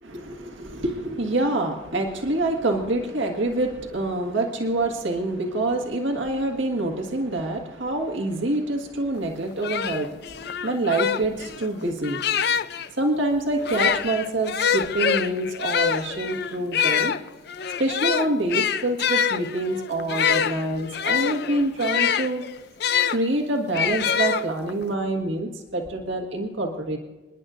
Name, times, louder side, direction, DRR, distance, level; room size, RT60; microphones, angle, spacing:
voice 1, 0.0-12.2 13.0-17.2 17.8-22.4 23.1-27.0, right 2 dB, 85° right, 3 dB, 1.8 m, -26 dB
sound 1, 9.2-9.3 9.6-12.9 13.6-23.2 23.7-24.8, left 8 dB, 55° left, 0.5 m, -25 dB
28.0 x 10.5 x 2.6 m, 1.2 s
head